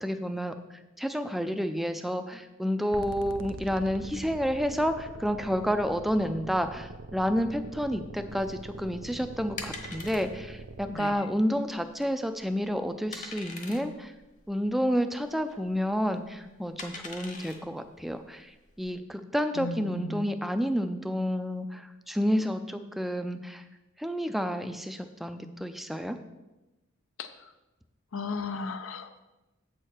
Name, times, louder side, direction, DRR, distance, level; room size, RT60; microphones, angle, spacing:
voice 1, 0.0-0.5 1.0-14.1 14.5-23.6 24.0-26.2, equal, ahead, 8 dB, 0.4 m, -30 dB
sound 1, 2.9-10.9, right 2 dB, 70° right, 0.6 m, -43 dB
sound 2, 8.3-18.9, left 3 dB, 40° left, 0.9 m, -45 dB
voice 2, 10.9-11.3 19.6-20.2 27.2-27.5 28.1-29.2, left 4 dB, 80° left, 9 dB, 0.5 m, -36 dB
8.0 x 6.4 x 4.4 m, 1.0 s
head